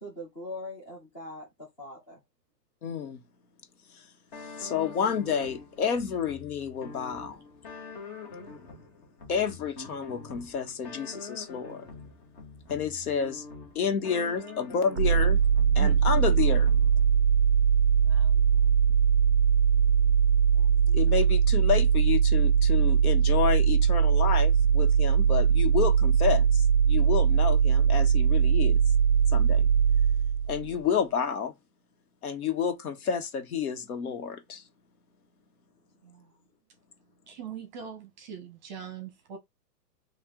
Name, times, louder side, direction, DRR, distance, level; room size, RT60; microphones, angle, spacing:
voice 1, 0.0-2.2 18.3-18.7 20.5-21.3 36.0-36.3, left 1 dB, 10° left, 0.6 m, -43 dB
voice 2, 2.8-3.2 3.9-4.1 4.4-7.4 9.3-11.9 12.7-13.5 13.7-15.4 15.7-16.7 20.9-28.8 29.3-29.7 30.5-31.5 32.2-34.6, left 7 dB, 65° left, 1.5 m, -30 dB
sound 1, 4.3-17.2, left 4 dB, 30° left, 1.6 m, -45 dB
sound 2, 15.0-30.7, right 7 dB, 45° right, 0.5 m, -21 dB
voice 3, 37.3-39.4, right 9 dB, 30° right, 1.0 m, -40 dB
4.6 x 2.7 x 3.8 m
hypercardioid pair, 170°, 48 cm